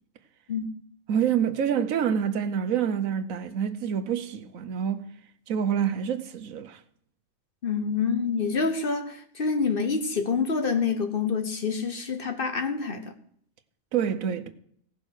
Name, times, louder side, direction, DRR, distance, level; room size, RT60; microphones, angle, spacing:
voice 1, 1.1-5.1 5.5-6.8 13.9-14.5, right 8 dB, 75° right, 1.2 m, -27 dB
voice 2, 7.6-13.1, left 5 dB, 45° left, 1.1 m, -27 dB
17.0 x 5.8 x 6.3 m
omnidirectional pair, 1.5 m